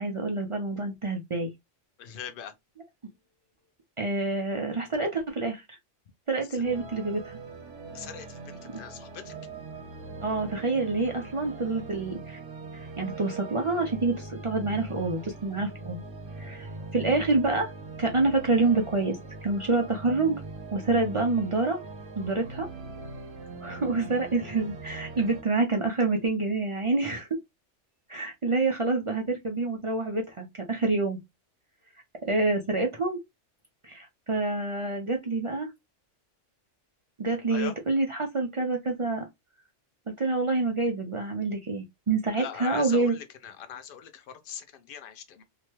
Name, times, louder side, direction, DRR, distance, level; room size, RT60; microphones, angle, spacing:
voice 1, 0.0-1.5 4.0-5.6 6.3-7.4 10.2-12.4 12.7-16.0 16.4-16.7 16.9-17.7 18.0-20.4 20.7-21.8 22.2-22.7 23.6-27.3 28.1-31.2 32.2-33.2 33.8-35.7 37.2-39.2 40.2-43.1, right 3 dB, 55° right, 0.3 m, -27 dB
voice 2, 2.0-2.5 6.5-6.6 7.9-9.3 37.5-37.7 42.4-45.4, left 8 dB, 55° left, 0.6 m, -41 dB
sound 1, 6.6-25.4, right 3 dB, 75° right, 1.1 m, -41 dB
2.8 x 2.2 x 2.9 m
omnidirectional pair, 1.3 m